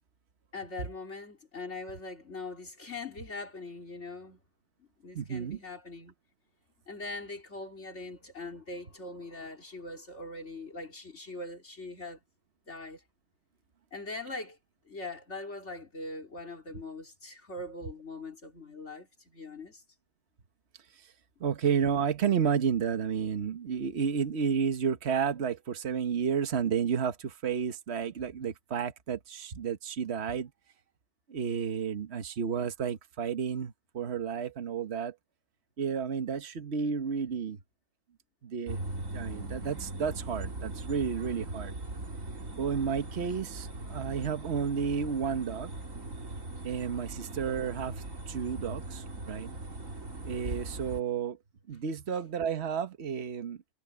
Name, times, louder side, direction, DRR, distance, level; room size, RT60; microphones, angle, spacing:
voice 1, 0.5-4.4 4.8-6.1 6.9-12.2 12.7-13.0 13.9-14.6 14.9-19.8, left 2 dB, 60° left, 3.8 m, -42 dB
voice 2, 5.1-5.6 21.4-30.5 31.3-35.1 35.8-37.6 38.4-38.8 39.1-41.7 42.6-45.7 46.6-49.5 50.2-51.4 51.7-53.7, right 7 dB, 55° right, 1.5 m, -31 dB
sound 1, 38.7-51.0, right 2 dB, 80° right, 3.9 m, -40 dB
omnidirectional pair, 1.4 m